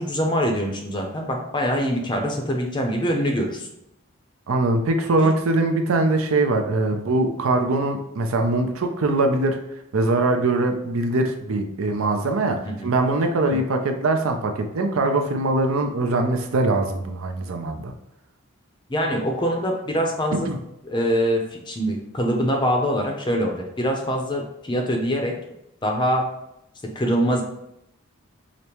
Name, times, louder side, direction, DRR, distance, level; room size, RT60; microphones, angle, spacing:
voice 1, 0.0-3.7 5.2-5.3 12.6-12.9 13.5-13.6 18.9-20.5 20.8-25.4 25.8-26.4 26.8-27.4, equal, 20° left, 2 dB, 0.5 m, -24 dB
voice 2, 4.5-9.6 9.9-17.9 20.3-20.6, right 2 dB, 75° right, 4 dB, 0.5 m, -22 dB
5.0 x 2.1 x 2.9 m, 0.80 s
head